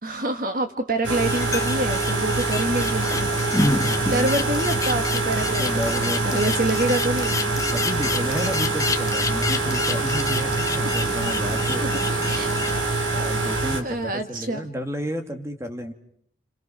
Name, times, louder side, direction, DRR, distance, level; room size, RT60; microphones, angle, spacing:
voice 1, 0.0-3.1 4.0-7.3 12.1-12.5 13.8-14.7, right 2 dB, 45° right, 6 dB, 1.5 m, -26 dB
sound 1, 1.0-13.8, right 3 dB, 80° right, 3.5 m, -25 dB
sound 2, 1.2-12.8, left 3 dB, 15° left, 1.2 m, -29 dB
voice 2, 3.9-4.3 4.7-4.8 5.5-6.5 7.7-11.9 13.1-15.9, equal, 15° right, 5 dB, 2.3 m, -31 dB
30.0 x 29.5 x 6.0 m, 0.67 s
head